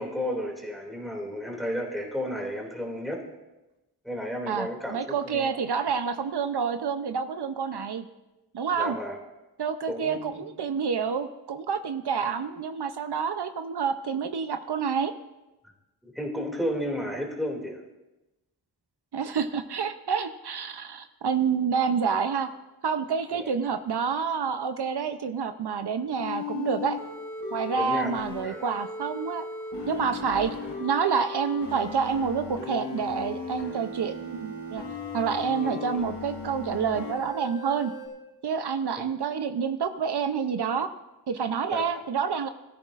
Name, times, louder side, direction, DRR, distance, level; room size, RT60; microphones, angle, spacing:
voice 1, 0.0-3.2 4.0-5.5 8.8-9.2 9.9-10.4 16.0-17.8 23.3-23.5 27.8-28.1 28.4-28.6 35.6-35.7 41.7-41.9, equal, ahead, -1 dB, 2.4 m, -32 dB
voice 2, 4.5-8.0 8.5-9.0 9.6-15.1 19.1-22.5 22.8-27.0 27.5-29.5 29.9-30.5 30.8-34.8 35.1-37.9 38.4-40.9 41.3-42.5, right 6 dB, 75° right, 9 dB, 0.7 m, -28 dB
sound 1, 26.2-38.1, left 4 dB, 75° left, 5.1 m, -37 dB
20.5 x 13.5 x 2.5 m, 1.0 s
wide cardioid pair, 105°, 40 cm